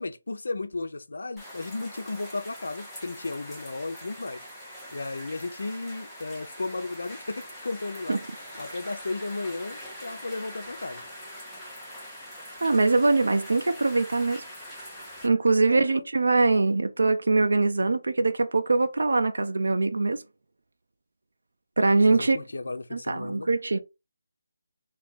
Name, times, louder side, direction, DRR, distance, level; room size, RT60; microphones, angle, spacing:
voice 1, 0.0-4.4 4.9-8.2 8.6-11.0 15.7-16.1 22.1-23.5, left 3 dB, 70° left, 0.5 m, -34 dB
sound 1, 1.4-15.3, equal, ahead, 0.6 m, -43 dB
voice 2, 12.6-14.4 15.2-20.2 21.8-22.4 22.9-23.8, right 3 dB, 75° right, 0.4 m, -23 dB
2.7 x 2.4 x 3.7 m
figure-of-eight pair, 175°, 0 cm